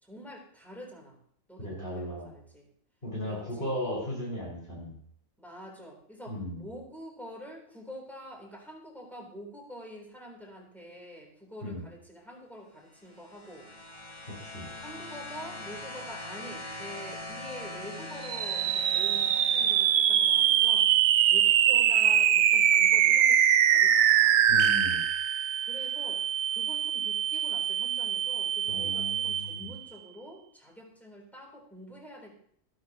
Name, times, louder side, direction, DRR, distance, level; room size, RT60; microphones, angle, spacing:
voice 1, 0.0-1.2 1.5-2.7 3.2-3.7 5.4-13.7 14.7-20.9 21.3-24.5 25.6-26.2 26.5-32.3, equal, ahead, -3 dB, 3.5 m, -46 dB
voice 2, 1.6-2.3 3.0-5.0 6.3-6.7 11.6-11.8 14.4-14.7 24.5-25.0 28.7-29.7, left 1 dB, 45° left, -4 dB, 5.2 m, -36 dB
sound 1, 12.9-20.7 21.7-21.8, left 1 dB, 25° left, 1.2 m, -42 dB
sound 2, 18.2-29.8, right 10 dB, 80° right, 1.1 m, -24 dB
14.0 x 12.5 x 2.9 m, 0.64 s
omnidirectional pair, 1.4 m